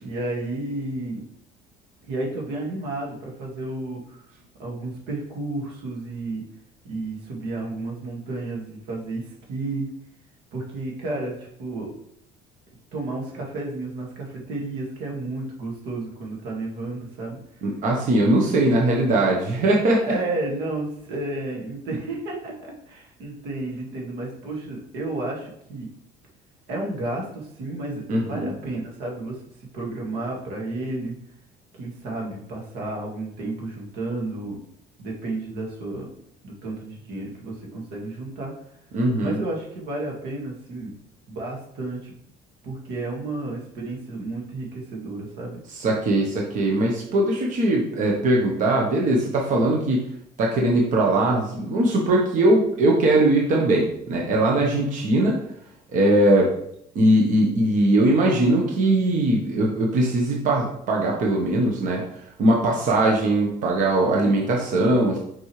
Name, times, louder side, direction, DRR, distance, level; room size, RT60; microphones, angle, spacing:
voice 1, 0.0-1.2 2.0-4.2 4.6-6.4 6.8-9.9 10.5-11.9 12.9-17.4 18.4-18.6 20.0-25.9 26.7-29.4 29.7-31.2 31.7-34.6 35.0-36.1 36.4-38.5 39.2-40.9 41.3-42.1 42.6-45.6 54.5-54.8, right 2 dB, 85° right, -1 dB, 2.0 m, -32 dB
voice 2, 17.6-20.0 28.1-28.5 38.9-39.4 45.7-50.0 50.4-55.4 55.9-56.5 56.9-62.0 62.4-65.2, right 1 dB, 50° right, -1 dB, 1.2 m, -20 dB
6.1 x 5.3 x 3.3 m, 0.72 s
cardioid pair, 145°, 16 cm